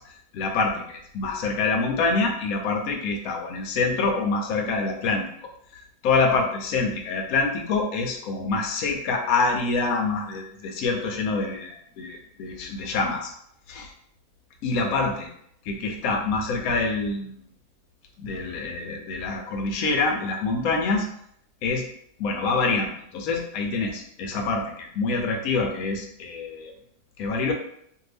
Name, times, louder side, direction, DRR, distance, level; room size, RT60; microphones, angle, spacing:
voice 1, 0.3-5.2 5.7-13.3 13.7-13.9 14.6-15.3 15.6-17.5 18.2-21.1 21.6-21.9 22.2-26.7 27.2-27.5, left 3 dB, 75° left, 2 dB, 1.0 m, -26 dB
2.7 x 2.6 x 3.3 m, 0.68 s
omnidirectional pair, 1.6 m